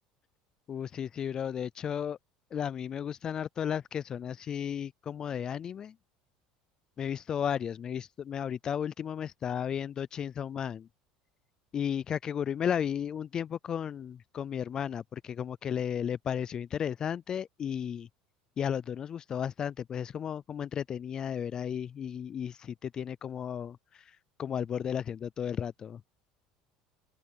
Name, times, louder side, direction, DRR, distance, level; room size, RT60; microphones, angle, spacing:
voice 1, 0.7-2.2 2.5-5.9 7.0-10.9 11.7-18.1 18.6-26.0, left 8 dB, 35° left, 0.3 m, -34 dB
open air
supercardioid pair, 105°, 2 cm